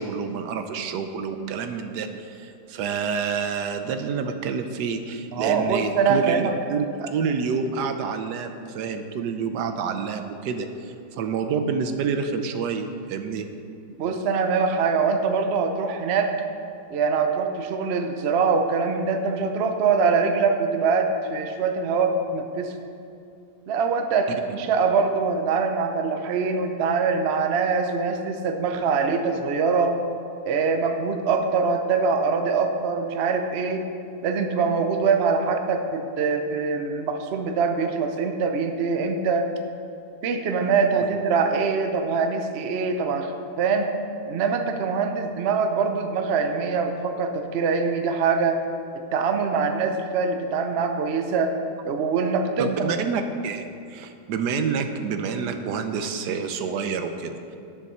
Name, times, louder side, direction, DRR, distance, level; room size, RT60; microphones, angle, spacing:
voice 1, 0.0-6.4 6.7-13.5 52.6-57.6, right 5 dB, 75° right, 7 dB, 1.3 m, -28 dB
voice 2, 5.3-6.5 14.0-16.3 16.9-22.7 23.7-30.0 30.5-33.8 34.2-39.5 40.2-43.3 43.6-43.9 44.3-48.6 49.1-51.5 51.8-52.9, right 5 dB, 50° right, 5 dB, 0.8 m, -23 dB
10.0 x 7.3 x 5.5 m, 2.6 s
omnidirectional pair, 1.8 m